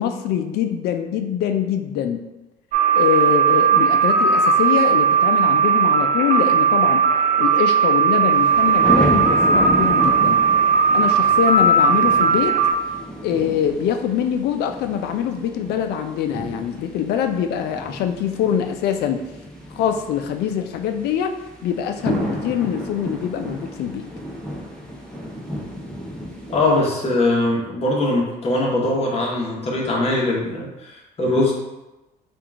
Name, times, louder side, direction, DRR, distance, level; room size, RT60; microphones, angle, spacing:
voice 1, 0.0-2.2 2.9-7.1 7.4-10.4 10.9-12.6 13.2-19.3 19.7-21.3 21.6-24.1, left 9 dB, 75° left, 7 dB, 0.4 m, -24 dB
sound 1, 2.7-12.7, right 5 dB, 50° right, 0.4 m, -17 dB
sound 2, 8.3-26.8, equal, 5° left, 0.7 m, -31 dB
voice 2, 26.5-31.5, left 2 dB, 35° left, -3 dB, 1.1 m, -21 dB
3.7 x 2.4 x 3.4 m, 1.0 s
cardioid pair, 110°, 17 cm